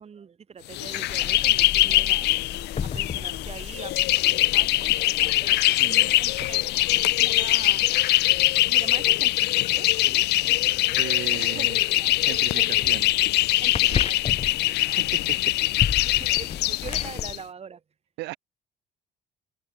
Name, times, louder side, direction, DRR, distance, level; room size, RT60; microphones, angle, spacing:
voice 1, 0.0-4.9 5.4-7.9 8.7-11.0 11.3-11.7 12.0-12.9 13.6-15.0 16.0-17.8, right 6 dB, 40° right, 7.5 m, -43 dB
sound 1, 0.7-17.4, left 18 dB, 80° left, 1.6 m, -22 dB
sound 2, 1.1-17.4, left 7 dB, 35° left, 1.6 m, -36 dB
voice 2, 5.6-6.1 11.0-11.8 12.2-13.1 13.9-14.0 14.8-15.6 18.2-18.4, right 20 dB, 90° right, 3.4 m, -37 dB
cardioid pair, 110°, 17 cm